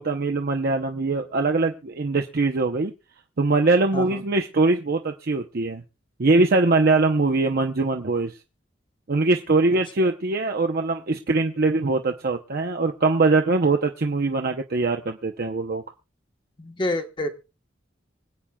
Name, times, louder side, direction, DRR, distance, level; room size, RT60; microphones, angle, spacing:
voice 1, 0.0-2.9 3.4-5.8 6.2-8.3 9.1-15.8, right 3 dB, 55° right, 0.7 m, -22 dB
voice 2, 16.6-17.3, left 1 dB, 25° left, 1.1 m, -28 dB
25.0 x 8.8 x 2.3 m
head